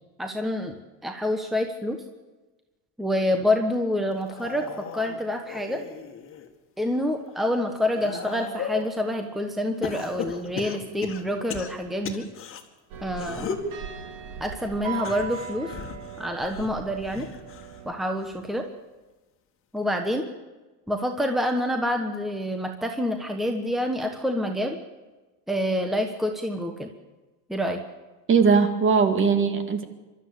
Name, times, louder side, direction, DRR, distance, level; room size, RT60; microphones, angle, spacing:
voice 1, 0.2-0.7 1.0-2.0 3.0-4.7 4.9-5.8 6.8-12.3 13.0-13.5 14.4-15.7 16.2-17.3 17.8-18.7 19.7-20.3 20.9-24.8 25.5-26.9 27.5-27.8, left 1 dB, ahead, 4 dB, 1.3 m, -27 dB
sound 1, 4.2-6.5 7.0-9.0 9.8-12.6 13.1-13.7 14.9-17.8 18.2-18.6 19.8-19.9, left 6 dB, 30° left, 2.1 m, -37 dB
sound 2, 12.9-17.9, right 7 dB, 60° right, 2.8 m, -38 dB
voice 2, 28.3-29.8, right 5 dB, 30° right, 8 dB, 2.1 m, -20 dB
24.5 x 13.0 x 8.4 m, 1.2 s
supercardioid pair, 135°, 40 cm